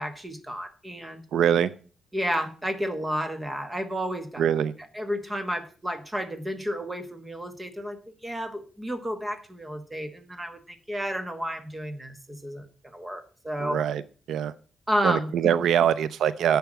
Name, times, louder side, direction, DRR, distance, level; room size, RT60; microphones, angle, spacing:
voice 1, 0.0-1.2 2.1-4.5 4.9-8.0 8.2-13.8 14.9-15.5, equal, 10° right, 9 dB, 1.4 m, -31 dB
voice 2, 1.3-1.7 4.4-4.7 13.6-14.0 14.3-14.5 15.0-16.6, right 9 dB, 90° right, 16 dB, 0.5 m, -23 dB
10.5 x 5.8 x 7.4 m, 0.40 s
wide cardioid pair, 145°, 0 cm